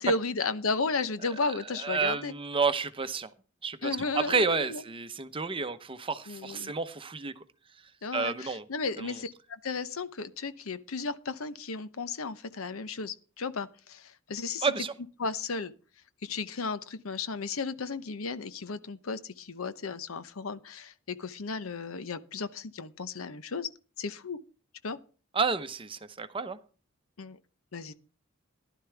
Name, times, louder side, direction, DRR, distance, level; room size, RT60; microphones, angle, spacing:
voice 1, 0.0-2.3 3.8-4.8 6.3-6.7 8.0-14.7 15.2-15.7 16.2-23.7 24.0-24.4 24.8-25.0 27.2-27.4 27.7-27.9, left 4 dB, 85° left, 0.8 m, -34 dB
voice 2, 1.7-3.3 3.6-7.4 8.1-8.7 9.0-9.2 14.6-14.9 25.3-26.6, right 4 dB, 25° right, 0.8 m, -30 dB
15.0 x 11.5 x 3.4 m
head